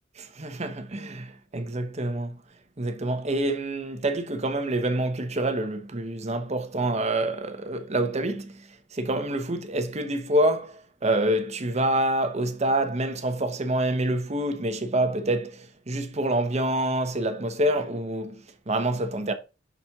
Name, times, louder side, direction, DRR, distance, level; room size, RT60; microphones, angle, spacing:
voice 1, 0.2-2.4 2.8-19.3, right 1 dB, 35° right, 0.9 m, -27 dB
6.1 x 4.1 x 5.8 m
head